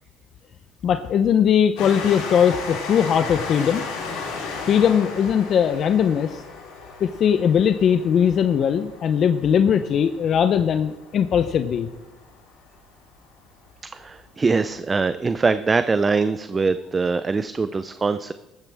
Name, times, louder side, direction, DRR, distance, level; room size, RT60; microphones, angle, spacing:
voice 1, 0.8-3.8 4.7-6.4 7.0-11.9, left 8 dB, 50° left, 10 dB, 0.6 m, -20 dB
Train, 1.8-12.9 13.7-13.8 14.0-14.1, left 4 dB, 90° left, 3.5 m, -35 dB
voice 2, 13.8-18.3, right 4 dB, 25° right, 12 dB, 0.5 m, -23 dB
14.5 x 13.5 x 3.5 m, 1.1 s
supercardioid pair, 95°, 0 cm